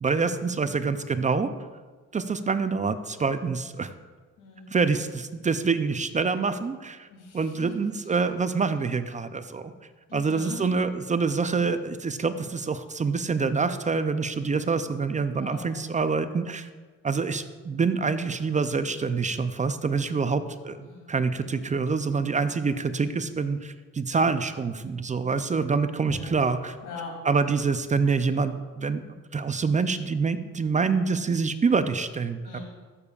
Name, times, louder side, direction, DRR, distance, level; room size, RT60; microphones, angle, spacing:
voice 1, 0.0-1.5 2.1-3.9 4.7-7.1 7.3-9.7 10.1-16.7 17.0-26.8 27.2-29.0 29.3-32.6, right 4 dB, 25° right, 11 dB, 0.4 m, -26 dB
voice 2, 4.4-4.7 7.1-7.7 10.1-10.7 15.4-15.6 20.8-21.3 26.1-26.4 26.8-27.1 32.5-32.6, left 3 dB, 90° left, 0 dB, 2.3 m, -41 dB
13.5 x 6.9 x 2.4 m, 1.4 s
cardioid pair, 90°, 30 cm